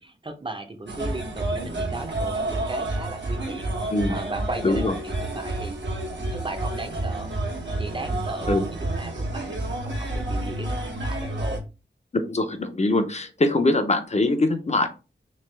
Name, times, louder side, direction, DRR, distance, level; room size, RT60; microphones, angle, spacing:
voice 1, 0.0-5.8 6.3-7.3 7.8-11.6, right 2 dB, 25° right, 6 dB, 0.7 m, -36 dB
sound 1, 0.9-11.6, right 2 dB, 70° right, 1.1 m, -29 dB
voice 2, 4.6-4.9 8.5-8.6 12.1-14.9, left 2 dB, 35° left, 7 dB, 0.7 m, -22 dB
3.3 x 3.3 x 3.3 m, 0.31 s
wide cardioid pair, 90°, 19 cm